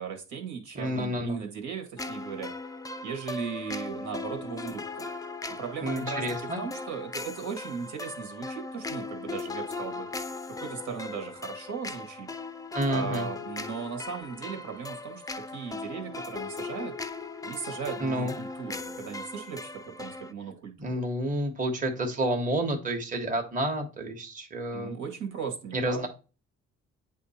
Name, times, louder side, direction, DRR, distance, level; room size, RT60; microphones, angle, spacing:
voice 1, 0.0-2.5 3.0-5.1 5.6-6.2 6.6-10.1 10.6-12.3 12.9-15.2 15.5-16.9 17.4-20.9 24.7-26.1, right 6 dB, 75° right, 3 dB, 1.7 m, -37 dB
voice 2, 0.7-1.4 5.8-6.6 12.7-13.3 18.0-18.3 20.8-24.9 25.7-26.1, right 1 dB, 25° right, 2 dB, 1.2 m, -29 dB
sound 1, 2.0-20.3, left 3 dB, 10° left, 0.5 m, -38 dB
8.2 x 2.8 x 4.2 m, 0.33 s
cardioid pair, 90°, 30 cm